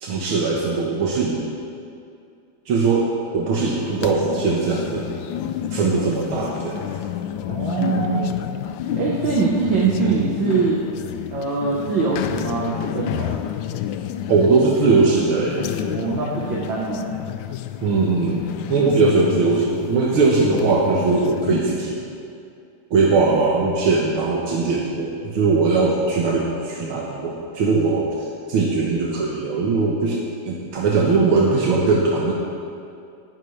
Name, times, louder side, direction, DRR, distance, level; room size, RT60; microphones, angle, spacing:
voice 1, 0.0-1.6 2.7-5.1 5.7-6.8 9.1-9.2 14.3-15.7 17.8-18.4 18.7-22.0 22.9-32.3, right 4 dB, 85° right, -3 dB, 2.0 m, -20 dB
sound 1, 3.6-21.6, left 10 dB, 75° left, 1.2 m, -30 dB
voice 2, 7.5-8.3 9.0-10.8 11.3-13.4 15.9-17.1 18.8-18.9, right 4 dB, 70° right, -4 dB, 1.9 m, -23 dB
17.5 x 12.5 x 3.3 m, 2.5 s
omnidirectional pair, 2.3 m